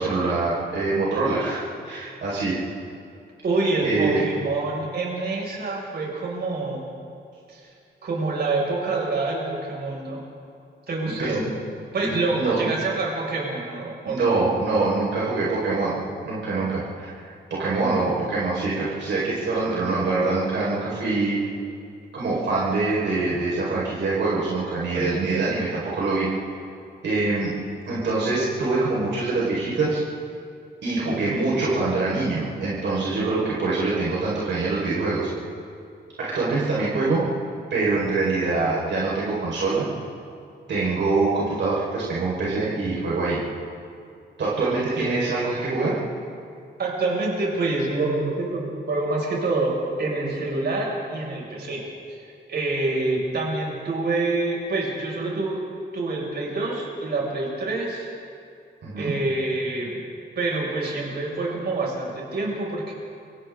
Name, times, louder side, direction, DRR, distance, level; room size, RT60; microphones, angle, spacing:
voice 1, 0.0-2.6 3.8-4.2 11.0-11.4 12.0-12.6 14.1-16.0 16.2-21.4 22.1-26.3 27.0-27.5 27.9-30.0 30.8-35.3 36.2-37.2 37.7-39.8 40.7-43.4 44.4-45.9 58.8-59.1, right 3 dB, 80° right, -7 dB, 5.2 m, -24 dB
voice 2, 3.4-6.8 7.5-7.6 8.0-10.2 10.9-11.5 11.9-14.4 24.9-25.5 31.0-31.6 45.0-45.1 46.8-49.7 50.0-51.8 52.1-55.6 55.9-58.1 59.0-60.0 60.4-62.9, right 3 dB, 65° right, -3 dB, 6.6 m, -27 dB
29.5 x 25.0 x 3.9 m, 2.4 s
wide cardioid pair, 130°, 18 cm